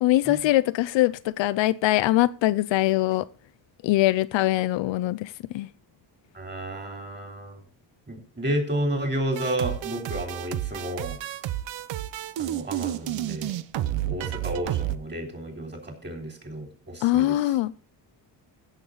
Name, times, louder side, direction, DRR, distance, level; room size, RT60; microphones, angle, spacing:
voice 1, 0.0-3.3 3.8-5.7 17.0-17.7, left 16 dB, 75° left, 0.6 m, -22 dB
voice 2, 6.3-7.6 8.1-11.2 12.4-13.5 13.9-17.4, right 1 dB, 25° right, 3.6 m, -31 dB
sound 1, 9.4-15.0, right 14 dB, 70° right, 0.9 m, -30 dB
15.5 x 6.7 x 3.9 m
cardioid pair, 120°, 45 cm